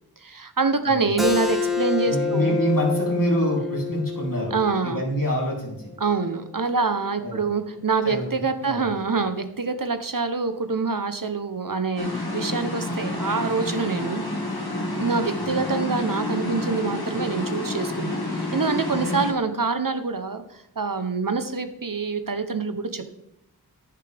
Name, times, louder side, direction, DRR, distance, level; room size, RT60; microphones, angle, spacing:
voice 1, 0.2-2.6 4.5-5.0 6.0-14.2 15.0-23.1, right 4 dB, 60° right, 9 dB, 0.9 m, -26 dB
Keyboard (musical), 1.2-6.4, left 4 dB, ahead, 1.7 m, -28 dB
voice 2, 2.1-4.5 4.8-5.9 7.2-7.4 8.0-8.2 8.6-8.9, equal, 60° left, -3 dB, 3.5 m, -26 dB
sound 1, 12.0-19.3, left 1 dB, 80° left, 2.2 m, -29 dB
10.5 x 10.5 x 3.5 m, 0.81 s
wide cardioid pair, 40°, 38 cm